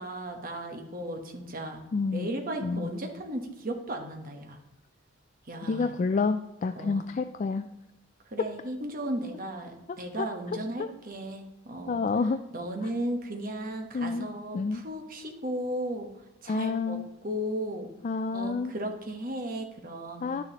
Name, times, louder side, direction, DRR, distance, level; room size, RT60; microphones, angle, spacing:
voice 1, 0.0-1.8 2.1-4.6 5.5-5.9 6.8-7.1 8.3-12.0 12.5-16.1 16.4-17.9 18.3-20.3, right 1 dB, 45° right, 3 dB, 1.1 m, -35 dB
voice 2, 1.9-2.3 2.6-2.9 5.7-7.7 10.2-10.3 10.8-10.9 11.9-12.4 13.9-14.3 14.5-14.8 16.5-17.1 18.0-18.7 20.2-20.4, left 4 dB, 40° left, 8 dB, 0.3 m, -28 dB
10.5 x 6.9 x 2.9 m, 0.96 s
head